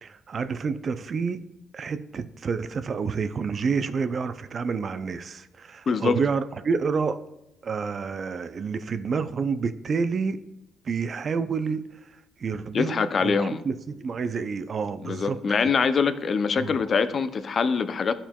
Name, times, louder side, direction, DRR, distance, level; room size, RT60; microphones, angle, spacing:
voice 1, 0.0-1.4 1.7-7.2 7.6-10.4 10.9-11.8 12.4-15.4 16.6-16.8, right 5 dB, 45° right, 0.4 m, -29 dB
voice 2, 5.9-6.2 12.7-13.6 15.0-18.1, left 5 dB, 45° left, 0.4 m, -24 dB
12.5 x 4.4 x 2.3 m
cardioid pair, 90°, 0 cm